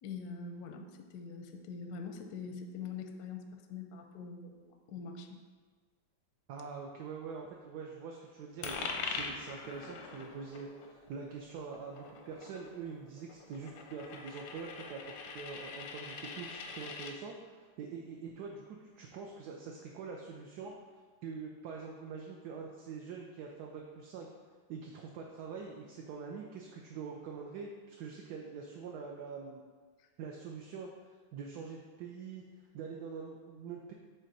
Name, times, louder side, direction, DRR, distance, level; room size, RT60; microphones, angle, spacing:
voice 1, 0.0-5.4 30.0-30.1, left 5 dB, 70° left, 5 dB, 0.9 m, -44 dB
voice 2, 6.5-20.7 21.2-24.3 24.7-29.6 30.2-30.9 31.3-32.5 32.7-33.9, right 5 dB, 70° right, 0 dB, 1.0 m, -44 dB
Coin (dropping), 8.6-17.1, left 4 dB, 90° left, 1.4 m, -43 dB
6.4 x 3.8 x 4.0 m, 1.5 s
omnidirectional pair, 2.1 m